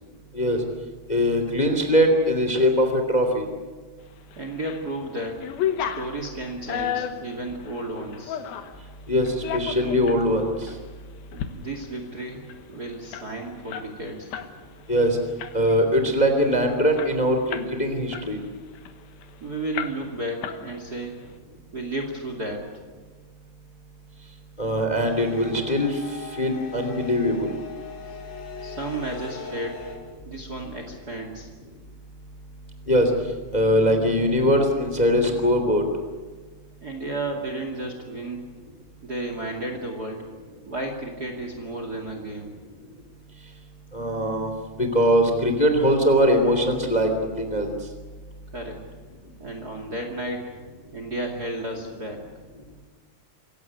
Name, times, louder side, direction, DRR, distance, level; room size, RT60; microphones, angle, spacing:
voice 1, 1.1-3.5 9.1-10.8 14.9-15.2 15.5-18.4 24.6-27.5 32.9-33.1 33.5-35.8 43.9-44.5 44.8-47.7, equal, 15° left, 6 dB, 2.6 m, -21 dB
sound 1, 4.3-4.8 5.2-8.8 9.3-10.2 10.7-10.8 11.2-11.5 11.8-11.9 12.2-14.5 14.8-15.0 15.4-15.8 16.3-16.4 16.6-17.8 18.1-19.3 19.7-20.2 20.4-21.1, left 9 dB, 90° left, 3.2 m, -32 dB
voice 2, 4.4-5.4 5.8-8.4 11.3-14.3 19.4-21.2 21.7-22.7 28.6-29.9 30.2-31.5 36.8-38.4 39.0-40.3 40.7-42.5 48.5-48.8 49.4-50.5 50.9-52.2, right 2 dB, 30° right, 4 dB, 2.5 m, -33 dB
sound 2, 25.0-29.9, left 4 dB, 65° left, 6.6 m, -39 dB
27.0 x 17.0 x 9.4 m, 1.4 s
omnidirectional pair, 4.1 m